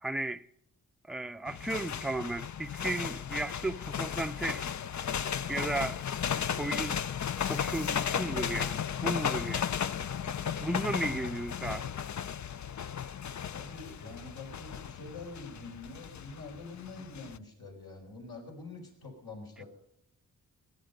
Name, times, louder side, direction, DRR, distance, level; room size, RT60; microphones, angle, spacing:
voice 1, 0.0-0.4 1.1-5.1 5.5-6.0 6.5-7.0 7.5-9.7 10.6-11.9, right 2 dB, ahead, 0.5 m, -35 dB
sound 1, 1.5-17.4, left 8 dB, 50° left, 0.5 m, -35 dB
voice 2, 13.5-19.7, left 3 dB, 75° left, 4.6 m, -46 dB
19.0 x 10.5 x 5.3 m
cardioid pair, 60°, 37 cm